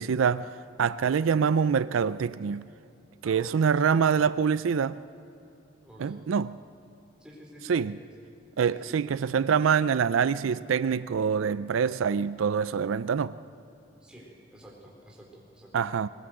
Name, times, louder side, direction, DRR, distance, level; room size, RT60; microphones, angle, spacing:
voice 1, 0.0-2.7 3.2-5.0 6.0-6.6 7.7-7.9 8.6-13.4 15.7-16.1, right 6 dB, 85° right, 0.4 m, -25 dB
voice 2, 3.2-3.6 5.8-6.2 7.2-8.1 8.7-9.0 14.0-15.9, equal, 5° right, 4.0 m, -50 dB
20.5 x 20.0 x 7.8 m
head